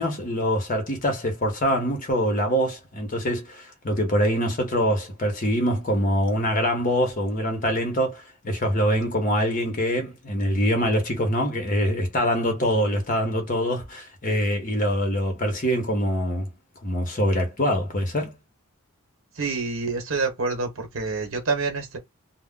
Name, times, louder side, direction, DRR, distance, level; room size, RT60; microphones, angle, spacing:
voice 1, 0.0-16.5 16.8-18.3, equal, 40° left, 0.9 m, -24 dB
voice 2, 19.4-22.0, right 4 dB, 70° right, 1.1 m, -27 dB
2.3 x 2.1 x 3.6 m
head